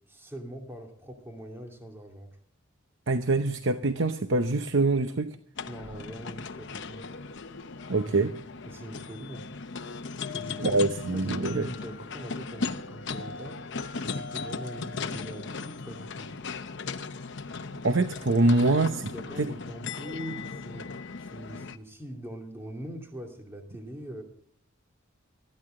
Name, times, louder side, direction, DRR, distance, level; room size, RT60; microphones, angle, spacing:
voice 1, 0.1-2.3 5.7-7.1 8.7-9.5 10.3-13.6 13.9-16.5 18.7-20.9 21.2-24.2, equal, 10° right, 2 dB, 2.4 m, -42 dB
voice 2, 3.1-5.4 7.9-8.4 10.6-11.7 17.8-19.1 19.4-19.5, right 2 dB, 60° right, 8 dB, 0.8 m, -24 dB
sound 1, 5.6-21.8, left 4 dB, 55° left, 0.8 m, -37 dB
19.5 x 14.0 x 3.7 m, 0.63 s
head